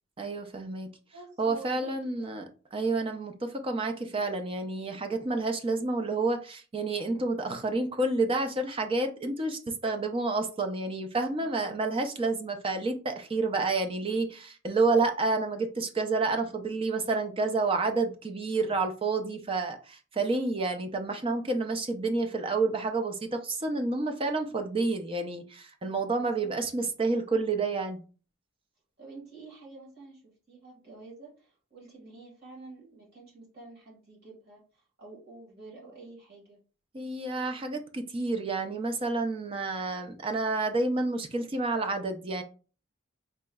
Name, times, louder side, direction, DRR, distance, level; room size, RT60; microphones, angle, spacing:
voice 1, 0.2-0.9 1.4-2.4 2.7-28.0 36.9-42.4, right 3 dB, 25° right, 0.4 m, -29 dB
voice 2, 1.1-2.3 11.4-11.7 26.2-26.5 29.0-36.6, right 3 dB, 45° right, 1.6 m, -49 dB
4.6 x 3.0 x 2.2 m
head